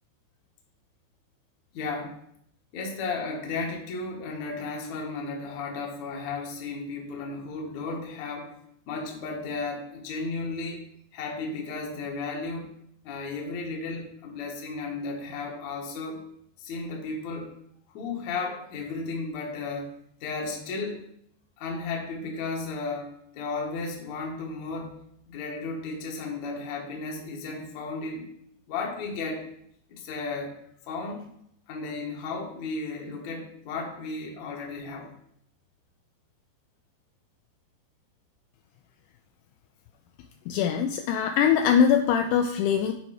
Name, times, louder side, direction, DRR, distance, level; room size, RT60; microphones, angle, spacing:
voice 1, 1.7-2.1 2.7-8.5 8.9-10.8 11.1-12.7 13.0-16.2 16.6-17.5 17.9-19.9 20.2-21.0 21.6-25.0 25.3-28.3 28.7-29.5 29.9-30.5 30.9-31.2 31.7-35.1, left 3 dB, 65° left, -1 dB, 1.9 m, -34 dB
voice 2, 40.5-42.9, left 8 dB, 85° left, 5 dB, 2.5 m, -22 dB
8.3 x 4.6 x 4.9 m, 0.72 s
omnidirectional pair, 5.1 m